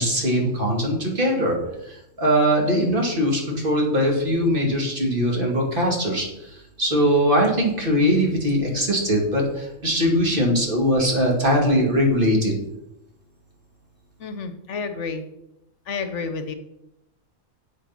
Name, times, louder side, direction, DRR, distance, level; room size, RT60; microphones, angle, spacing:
voice 1, 0.0-1.5 1.8-12.5, equal, 40° right, -1 dB, 2.4 m, -21 dB
voice 2, 14.2-15.2 15.9-16.5, left 4 dB, 70° left, 8 dB, 1.1 m, -30 dB
8.1 x 6.6 x 5.7 m, 0.87 s
omnidirectional pair, 1.3 m